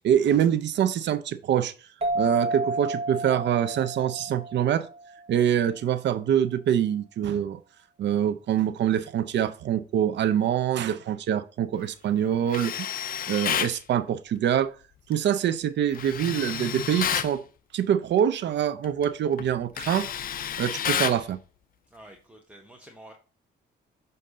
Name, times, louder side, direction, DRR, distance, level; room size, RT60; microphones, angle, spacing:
voice 1, 0.0-1.7 2.1-4.9 5.3-7.6 8.0-12.9 13.3-14.7 15.1-17.4 17.7-20.1 20.6-21.4, right 9 dB, 65° right, 0.5 m, -25 dB
sound 1, 2.0-5.3, right 2 dB, 30° right, 1.1 m, -31 dB
Tools, 12.5-13.8 15.9-17.3 18.8-19.0 19.4-21.2, left 9 dB, 45° left, 0.4 m, -30 dB
voice 2, 21.9-23.1, right 1 dB, 5° right, 0.9 m, -49 dB
7.7 x 2.7 x 4.9 m
cardioid pair, 90°, 20 cm